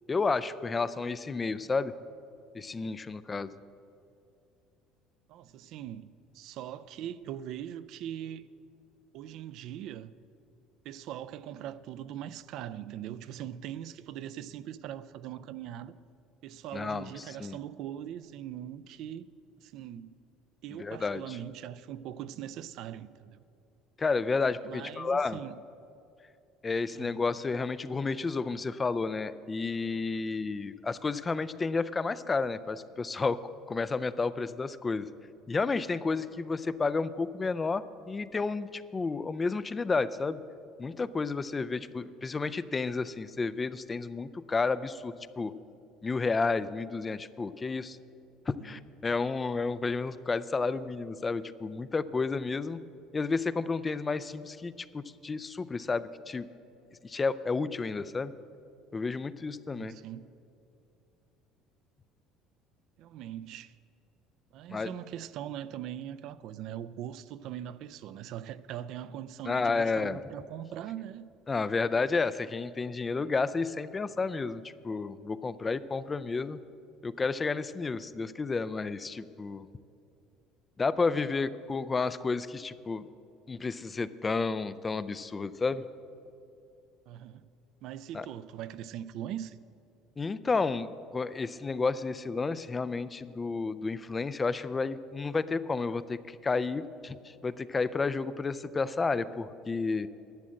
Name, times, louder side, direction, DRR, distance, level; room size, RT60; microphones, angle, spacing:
voice 1, 0.1-1.9 2.5-3.5 16.7-17.1 17.4-17.6 20.8-21.4 24.0-25.4 26.6-33.4 33.7-35.1 35.5-40.4 40.8-45.5 46.0-48.0 48.5-52.8 53.1-56.5 57.0-58.3 58.9-59.9 64.7-64.9 69.5-70.2 71.5-76.6 77.0-79.7 80.8-83.0 83.5-85.8 88.1-88.3 90.2-100.1, left 4 dB, 20° left, 0.3 m, -31 dB
voice 2, 5.3-6.1 6.3-8.5 9.1-10.1 10.8-15.9 16.4-19.2 19.6-20.2 20.6-23.4 24.6-25.6 26.9-27.2 48.6-48.7 59.7-60.3 63.0-63.7 64.5-71.3 87.1-87.5 87.8-89.6, right 11 dB, 60° right, 0.4 m, -41 dB
11.5 x 7.5 x 7.6 m
cardioid pair, 145°, 0 cm